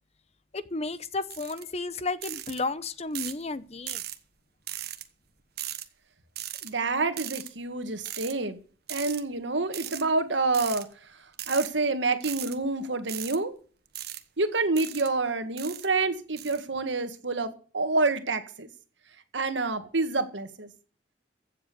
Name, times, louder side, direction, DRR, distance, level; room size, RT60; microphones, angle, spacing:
voice 1, 0.5-4.0, left 3 dB, 35° left, 0.8 m, -33 dB
sound 1, 1.3-1.6 2.2-2.6 3.1-3.4 3.9-4.2 4.7-5.0 5.6-5.9 6.4-6.7 7.2-7.5 8.0-8.3 8.9-9.2 9.7-10.0 10.5-10.8 11.3-11.7 12.2-12.6 13.1-13.4 13.9-14.2 14.8-15.1 15.6-15.9 16.4-16.6, right 13 dB, 55° right, 1.2 m, -37 dB
voice 2, 6.6-8.6 8.9-10.9 11.5-13.5 14.4-18.7 19.3-20.7, right 3 dB, 80° right, 1.8 m, -28 dB
15.0 x 7.6 x 6.9 m
head